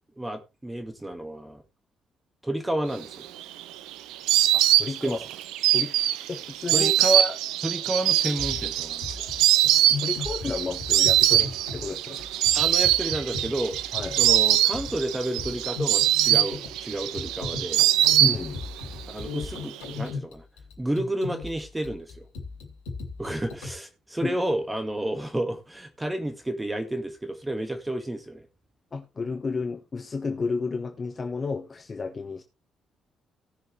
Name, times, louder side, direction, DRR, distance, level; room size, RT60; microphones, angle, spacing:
voice 1, 0.2-1.6 2.4-3.3 5.0-5.2 6.7-7.4 7.6-9.2 12.5-13.7 14.2-17.8 19.1-20.4 20.8-22.3 23.2-28.4, right 1 dB, 15° right, 1.9 m, -30 dB
Insect, 3.1-18.8 19.1-19.9, right 13 dB, 70° right, 0.6 m, -23 dB
voice 2, 4.5-5.2 5.7-5.9 6.3-6.9 10.0-12.3 13.9-14.2 18.2-18.6 24.2-24.4 28.9-32.4, left 4 dB, 40° left, 1.3 m, -32 dB
sound 1, 8.4-23.7, left 4 dB, 80° left, 2.7 m, -37 dB
17.0 x 6.7 x 3.3 m
hypercardioid pair, 45°, 0 cm